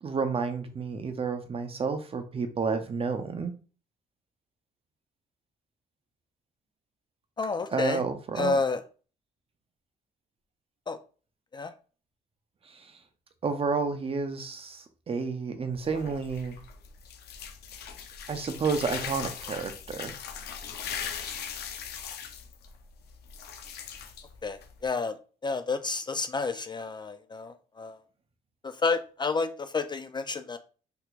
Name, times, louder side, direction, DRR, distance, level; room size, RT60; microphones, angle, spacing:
voice 1, 0.0-3.5 7.7-8.6 12.7-12.9 13.4-16.6 18.3-20.1, right 5 dB, 35° right, 0.6 m, -30 dB
voice 2, 7.4-8.0 8.4-8.8 10.9-11.0 11.5-11.7 24.4-25.1 25.4-28.0 28.8-30.6, left 4 dB, 25° left, 0.3 m, -30 dB
sound 1, 15.7-24.9, left 7 dB, 70° left, 0.6 m, -40 dB
3.4 x 2.9 x 2.4 m
cardioid pair, 90°, 17 cm